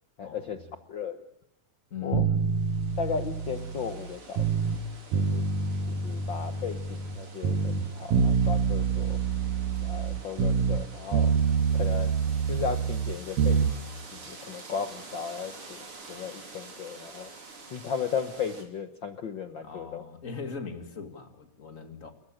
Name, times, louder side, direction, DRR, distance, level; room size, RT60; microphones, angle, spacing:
voice 1, 0.2-1.3 2.0-2.3 3.0-4.5 5.1-5.4 5.9-9.2 9.8-11.3 11.7-12.2 12.5-13.6 14.1-17.3 17.7-20.0, left 6 dB, 80° left, 9 dB, 1.0 m, -35 dB
voice 2, 1.9-2.5 19.6-22.1, left 6 dB, 30° left, 8 dB, 1.9 m, -39 dB
sound 1, 2.1-4.8 5.1-7.2 7.4-10.9 11.1-13.8, right 6 dB, 85° right, 2.8 m, -26 dB
sound 2, 2.4-18.6, right 3 dB, 45° right, 4.2 m, -48 dB
29.0 x 14.5 x 8.8 m, 0.83 s
omnidirectional pair, 3.7 m